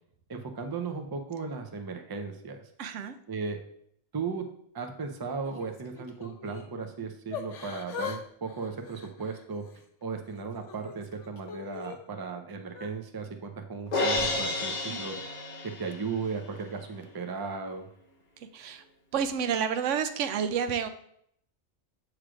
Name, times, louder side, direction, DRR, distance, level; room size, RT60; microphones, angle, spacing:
voice 1, 0.3-2.7 3.3-3.6 4.1-4.4 4.7-9.6 10.0-15.2 15.6-17.9, right 4 dB, 25° right, 5 dB, 0.5 m, -36 dB
voice 2, 2.8-3.2 14.9-15.0 18.5-18.8 19.1-20.9, right 7 dB, 85° right, 9 dB, 1.0 m, -29 dB
Yell / Crying sobbing, 5.4-6.7 7.3-8.2 8.5-9.8 10.3-12.0 12.7-12.9, left 6 dB, 80° left, 1.2 m, -41 dB
Crash cymbal, 13.9-16.2, left 2 dB, 40° left, 0.9 m, -30 dB
7.4 x 3.3 x 4.9 m, 0.70 s
omnidirectional pair, 1.2 m